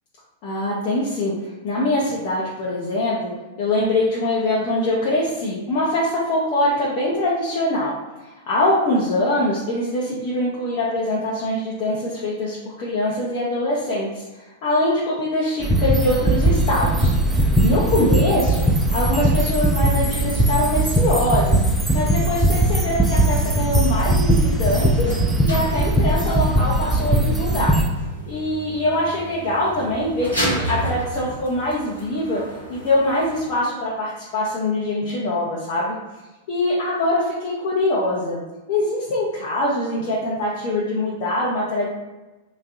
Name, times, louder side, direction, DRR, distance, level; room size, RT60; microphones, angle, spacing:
voice 1, 0.4-1.3 1.6-3.3 3.6-7.9 8.2-18.6 18.9-21.6 21.9-25.1 25.4-27.8 28.3-32.4 32.7-35.9 36.5-38.4 38.7-41.9, left 1 dB, 50° left, -6 dB, 0.6 m, -23 dB
sound 1, 15.6-27.9, right 1 dB, 5° right, 0.4 m, -19 dB
sound 2, 22.8-33.5, equal, 90° left, 0.8 m, -33 dB
2.6 x 2.0 x 3.6 m, 1.1 s
figure-of-eight pair, 95°, 0 cm